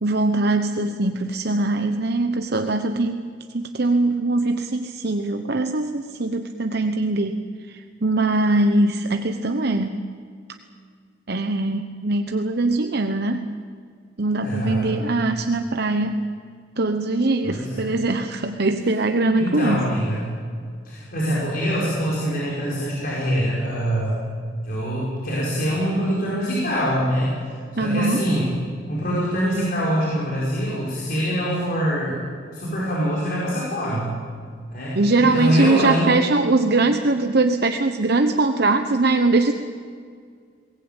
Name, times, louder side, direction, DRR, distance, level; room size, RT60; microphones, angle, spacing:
voice 1, 0.0-9.9 11.3-13.5 14.2-16.2 16.8-19.8 27.8-28.2 34.9-39.5, right 2 dB, 60° right, 6 dB, 1.0 m, -22 dB
voice 2, 14.4-14.9 17.4-18.0 19.4-20.3 20.9-24.2 24.6-27.3 27.8-28.5 28.9-32.2 32.5-34.1 34.7-36.2, equal, 55° left, -6 dB, 5.3 m, -24 dB
22.0 x 18.5 x 9.0 m, 2.1 s
head